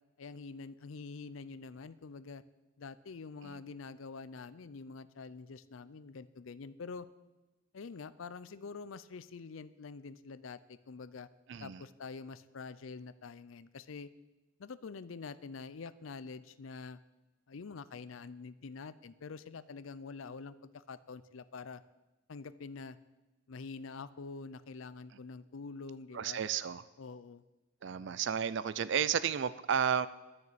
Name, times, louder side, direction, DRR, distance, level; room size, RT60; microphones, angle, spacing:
voice 1, 0.2-2.4 2.8-7.1 7.7-11.3 11.6-14.1 14.6-17.0 17.5-21.8 22.3-23.0 23.5-26.4 27.0-27.4, left 4 dB, 70° left, 15 dB, 0.5 m, -46 dB
voice 2, 11.5-11.8 26.1-26.8 27.8-30.1, right 8 dB, 60° right, 16 dB, 0.4 m, -32 dB
11.0 x 6.6 x 8.7 m, 1.1 s
head